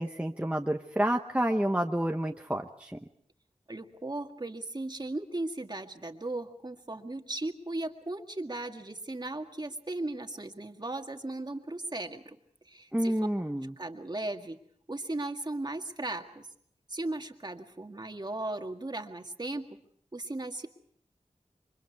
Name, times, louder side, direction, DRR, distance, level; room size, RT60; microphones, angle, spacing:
voice 1, 0.0-3.0 12.9-13.7, right 1 dB, 10° right, 3 dB, 1.1 m, -29 dB
voice 2, 3.7-12.4 12.7-13.1 13.8-14.6 14.9-16.5 16.9-19.8 20.1-20.7, right 2 dB, 35° right, 4 dB, 1.9 m, -37 dB
28.0 x 24.5 x 4.7 m, 0.66 s
wide cardioid pair, 65°, 13 cm